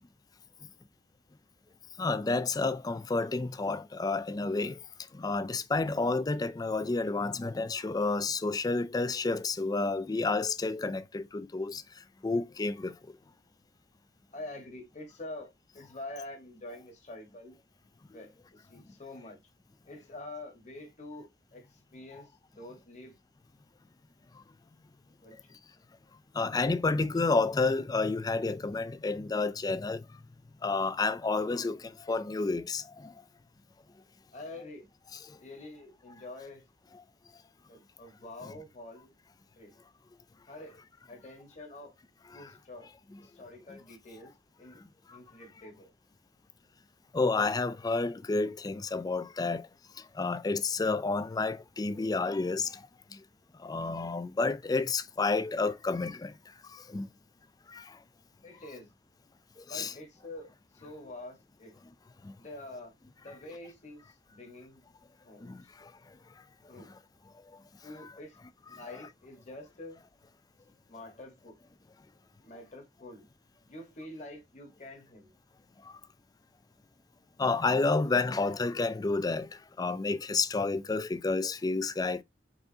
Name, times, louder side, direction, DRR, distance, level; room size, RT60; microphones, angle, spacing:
voice 1, 2.0-4.8 5.2-11.8 12.2-12.9 26.4-30.0 30.6-33.1 47.1-49.6 50.2-52.7 53.6-56.3 56.9-57.0 57.7-57.8 59.7-59.9 65.4-65.6 77.4-79.5 79.8-82.2, left 3 dB, 20° left, 0.4 m, -30 dB
voice 2, 14.3-17.6 18.1-19.4 19.8-23.1 25.2-25.6 34.3-34.8 35.4-36.6 37.7-39.1 39.5-39.8 40.5-40.8 41.1-41.9 42.3-42.9 43.2-44.3 44.6-44.8 45.1-45.9 58.4-58.9 59.6-61.8 62.4-62.9 63.2-64.8 65.2-65.6 66.7-66.9 67.8-68.4 68.7-70.0 70.9-71.6 72.4-73.3 73.7-75.3, left 2 dB, 45° left, 1.3 m, -46 dB
4.7 x 3.7 x 2.7 m
head